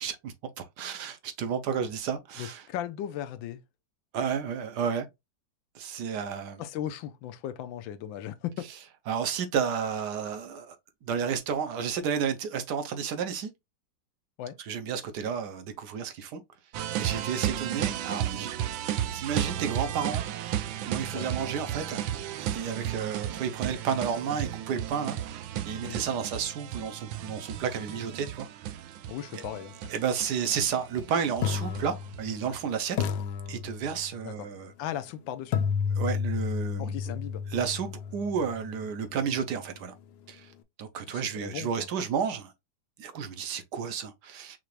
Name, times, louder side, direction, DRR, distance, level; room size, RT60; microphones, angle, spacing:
voice 1, 0.0-2.6 4.1-5.1 5.7-6.6 9.1-10.8 11.0-13.5 14.6-16.4 16.9-18.5 19.1-20.2 20.8-22.0 22.4-28.5 29.9-33.0 33.5-34.7 36.0-36.9 37.5-39.9 40.3-40.5 40.8-42.5 43.0-44.6, right 7 dB, 70° right, 1.2 m, -32 dB
voice 2, 2.4-3.6 6.6-8.6 14.4-14.6 21.1-21.3 25.8-26.0 29.1-30.0 34.2-34.5 34.8-35.6 36.8-37.4 41.1-41.9, left 11 dB, 85° left, 1.4 m, -37 dB
sound 1, 16.7-32.6, right 11 dB, 85° right, 1.4 m, -34 dB
sound 2, 30.3-30.5 31.4-32.6 33.0-34.2 35.5-39.4, left 6 dB, 70° left, 1.1 m, -32 dB
5.8 x 2.5 x 3.2 m
omnidirectional pair, 2.0 m